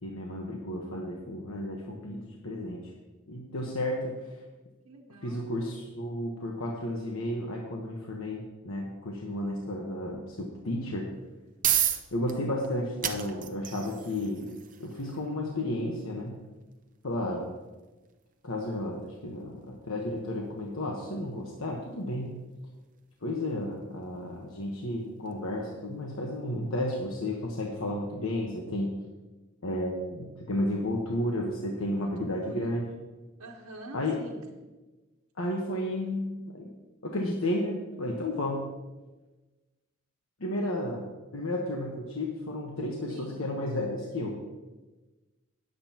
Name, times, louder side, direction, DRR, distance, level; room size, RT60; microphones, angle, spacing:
voice 1, 0.0-2.8 3.3-4.2 5.2-11.1 12.1-14.5 14.8-16.4 17.0-17.5 18.4-22.3 23.2-28.9 29.6-32.8 33.9-34.2 35.4-36.7 37.0-38.6 40.4-41.0 41.3-44.4, left 1 dB, 70° left, -1 dB, 1.2 m, -32 dB
voice 2, 4.8-5.5 17.3-17.5 31.8-32.7 33.4-34.4 43.1-43.4, right 1 dB, 85° right, -2 dB, 1.1 m, -47 dB
sound 1, 11.1-26.0, right 11 dB, 35° right, 0.6 m, -37 dB
19.5 x 7.9 x 2.9 m, 1.2 s
head